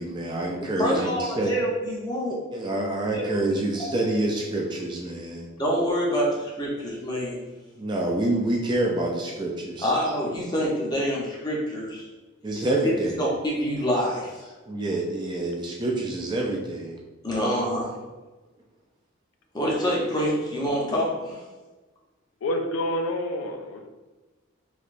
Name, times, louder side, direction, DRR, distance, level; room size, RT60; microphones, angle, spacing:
voice 1, 0.0-1.5 2.5-5.5 7.8-9.9 12.4-13.3 14.7-17.0, right 2 dB, 20° right, -1 dB, 0.3 m, -27 dB
voice 2, 0.8-2.4 3.1-3.2 3.8-3.9 5.6-7.4 9.8-12.1 12.8-12.9 13.2-14.5 17.2-18.0 19.5-21.4, equal, 20° left, -4 dB, 0.6 m, -26 dB
voice 3, 22.4-23.9, left 1 dB, 75° left, 4 dB, 0.4 m, -28 dB
3.2 x 2.8 x 2.5 m, 1.2 s
head